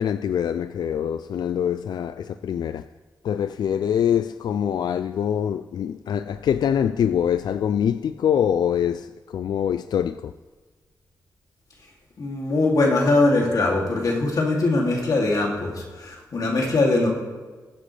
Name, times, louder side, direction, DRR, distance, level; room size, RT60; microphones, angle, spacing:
voice 1, 0.0-2.9 3.2-10.3, left 9 dB, 80° left, 0.3 m, -24 dB
voice 2, 12.2-17.1, left 2 dB, 60° left, 2.7 m, -21 dB
21.0 x 7.5 x 3.3 m
cardioid pair, 95°, 7 cm